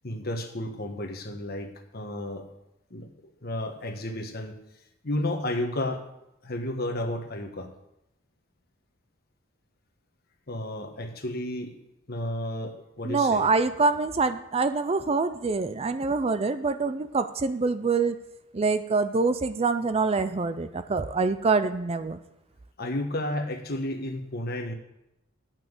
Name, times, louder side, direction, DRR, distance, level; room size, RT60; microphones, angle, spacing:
voice 1, 0.0-2.4 2.9-3.1 3.4-4.5 5.0-6.0 6.4-7.7 10.5-11.7 12.1-13.5 22.8-24.7, left 1 dB, 50° left, 4 dB, 1.3 m, -32 dB
voice 2, 13.0-18.2 18.5-22.2, right 4 dB, 30° right, 11 dB, 0.4 m, -25 dB
9.2 x 6.0 x 7.9 m, 0.86 s
head